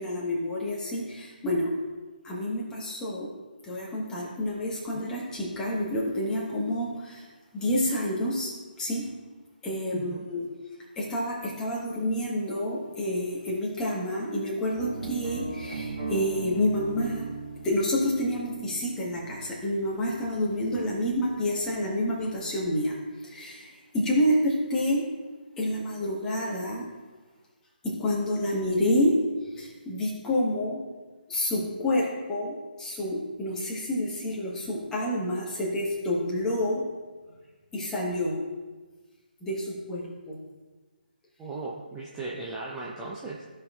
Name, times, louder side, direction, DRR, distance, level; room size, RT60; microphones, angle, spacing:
voice 1, 0.0-1.7 2.2-3.3 3.6-7.2 7.5-9.1 9.6-10.5 11.0-17.3 17.6-23.0 23.2-25.0 25.6-26.9 27.8-29.1 29.5-30.8 31.3-36.8 37.7-38.4 39.4-40.4, left 1 dB, 10° left, -4 dB, 1.3 m, -28 dB
voice 2, 9.9-10.3 41.4-43.4, right 3 dB, 10° right, -5 dB, 0.6 m, -37 dB
sound 1, 14.7-22.6, right 3 dB, 50° right, 1.6 m, -39 dB
14.5 x 5.3 x 2.4 m, 1.3 s
figure-of-eight pair, 150°, 5 cm